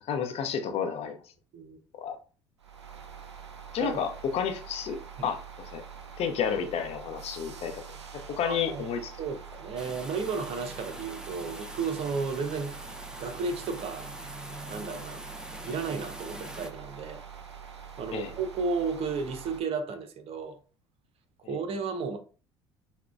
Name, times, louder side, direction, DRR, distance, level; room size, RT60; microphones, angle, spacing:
voice 1, 0.1-1.2 2.0-2.2 3.7-5.4 5.7-5.8 6.2-7.8 8.1-9.1 18.1-18.3 21.4-21.5, left 7 dB, 45° left, 0.6 m, -31 dB
sound 1, 2.6-19.6, right 7 dB, 85° right, 0.5 m, -45 dB
voice 2, 8.4-8.8 9.2-12.7 13.2-14.1 14.7-15.2 15.6-17.2 18.0-20.6 21.5-22.2, right 5 dB, 45° right, 0.7 m, -33 dB
sound 2, 9.8-16.7, right 1 dB, 5° right, 0.6 m, -43 dB
5.7 x 2.2 x 2.4 m
figure-of-eight pair, 60°, 14 cm